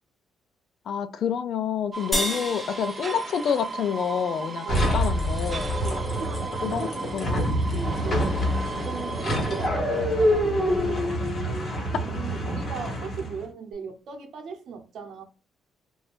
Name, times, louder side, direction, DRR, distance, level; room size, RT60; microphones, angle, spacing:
voice 1, 0.9-5.8 6.6-6.9 7.1-7.6, left 7 dB, 65° left, 0.3 m, -28 dB
sound 1, 1.9-9.7, right 4 dB, 30° right, 0.4 m, -36 dB
sound 2, 2.1-4.7, equal, 10° left, 0.8 m, -32 dB
sound 3, 4.7-13.4, equal, 40° left, 1.3 m, -26 dB
voice 2, 5.8-11.2 11.9-15.2, right 6 dB, 65° right, 0.8 m, -38 dB
2.4 x 2.2 x 3.4 m
cardioid pair, 90°, 0 cm